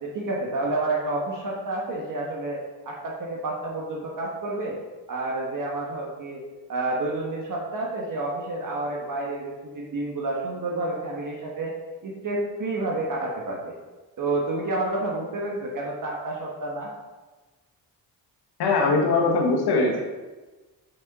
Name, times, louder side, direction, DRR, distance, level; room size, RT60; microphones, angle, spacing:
voice 1, 0.0-4.8 5.1-6.4 6.7-11.7 12.0-13.7 14.2-16.9, right 2 dB, 55° right, -2 dB, 1.3 m, -29 dB
voice 2, 18.6-20.0, left 3 dB, 85° left, 1 dB, 1.4 m, -21 dB
5.4 x 5.2 x 4.1 m, 1.2 s
cardioid pair, 80°, 38 cm